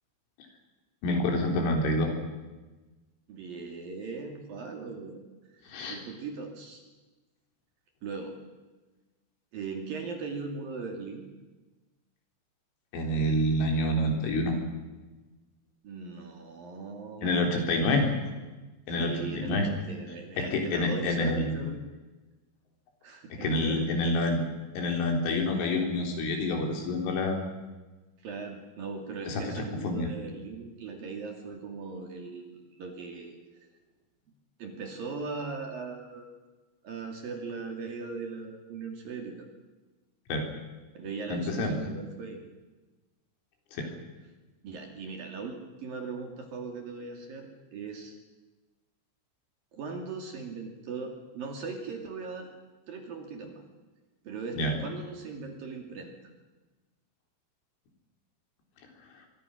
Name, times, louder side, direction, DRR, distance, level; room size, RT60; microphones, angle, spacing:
voice 1, 1.0-2.1 5.7-6.0 12.9-14.6 17.2-18.0 18.9-19.7 20.5-21.5 23.3-24.4 24.8-27.4 29.3-30.1 40.3-40.5 41.3-41.7 43.7-43.9 54.5-54.8, left 1 dB, 70° left, 3 dB, 6.1 m, -27 dB
voice 2, 3.3-5.2 5.8-6.8 8.0-8.3 9.5-11.2 15.8-18.1 19.0-21.8 23.0-23.9 28.2-33.4 34.6-36.3 36.8-39.5 40.9-42.4 43.8-44.0 44.6-48.2 49.7-52.5 52.9-53.6 54.2-56.1, right 4 dB, 50° right, 3 dB, 3.6 m, -39 dB
24.5 x 24.0 x 6.4 m, 1.2 s
omnidirectional pair, 5.9 m